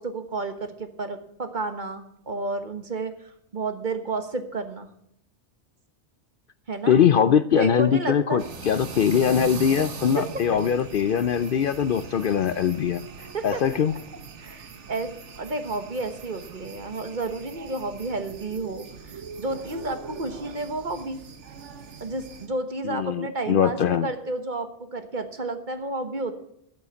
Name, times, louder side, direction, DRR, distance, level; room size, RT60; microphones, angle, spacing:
voice 1, 0.0-4.9 6.7-7.0 7.6-8.5 10.2-10.4 13.3-13.6 14.4-21.2 22.0-26.3, right 2 dB, 45° right, 8 dB, 1.4 m, -31 dB
voice 2, 6.9-13.0 13.4-13.9 22.9-24.1, left 8 dB, 60° left, 13 dB, 0.7 m, -22 dB
sound 1, 8.4-22.5, right 5 dB, 90° right, 1.4 m, -40 dB
13.5 x 7.7 x 5.8 m, 0.73 s
omnidirectional pair, 1.2 m